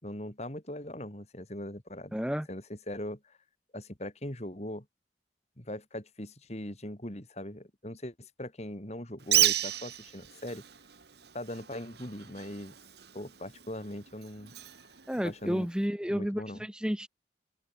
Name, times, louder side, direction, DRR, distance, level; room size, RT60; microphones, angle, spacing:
voice 1, 0.0-2.2 2.5-3.4 3.7-4.8 5.6-10.6 11.3-12.7 13.1-14.5 15.2-15.7 16.1-16.6, left 1 dB, 35° left, 3.3 m, -40 dB
voice 2, 2.1-2.5 15.1-17.1, equal, 5° right, 1.2 m, -31 dB
Bird, 9.2-15.9, right 13 dB, 60° right, 2.3 m, -33 dB
open air
head